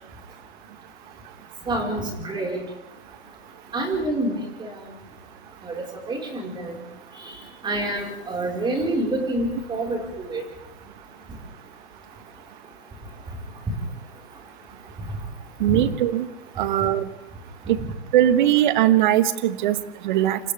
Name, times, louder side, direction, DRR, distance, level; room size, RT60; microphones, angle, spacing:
voice 1, 1.7-2.6 3.7-4.7 5.6-6.8 7.2-10.4 15.7-15.8 17.7-17.8, right 1 dB, 15° right, 0 dB, 5.2 m, -27 dB
voice 2, 15.6-16.3 16.6-17.1 17.7-17.8 18.1-20.4, right 12 dB, 45° right, 12 dB, 1.6 m, -20 dB
28.5 x 28.0 x 3.6 m, 0.89 s
hypercardioid pair, 125°, 34 cm